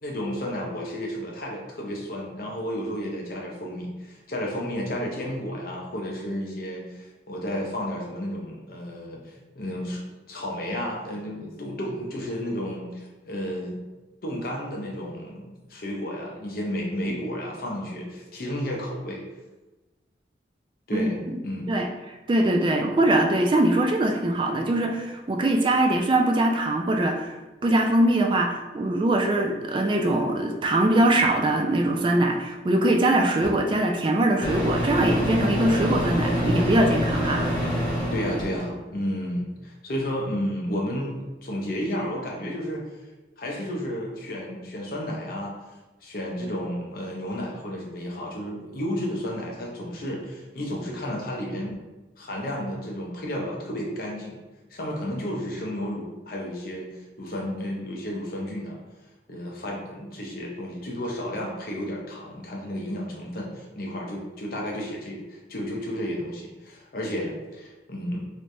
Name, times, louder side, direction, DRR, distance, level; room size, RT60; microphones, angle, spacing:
voice 1, 0.0-10.0 10.3-13.8 14.2-19.2 20.9-21.1 21.4-21.7 38.1-42.8 43.4-45.5 46.0-51.8 52.2-54.4 54.7-58.8 59.3-68.3, equal, 55° left, -2 dB, 0.7 m, -32 dB
voice 2, 20.9-21.4 21.7-21.9 22.3-27.4 27.6-37.5, right 1 dB, 30° right, 2 dB, 0.3 m, -22 dB
Microwave oven, 33.4-33.5 34.4-38.7, equal, 25° left, 0.9 m, -26 dB
3.2 x 3.2 x 2.6 m, 1.1 s
head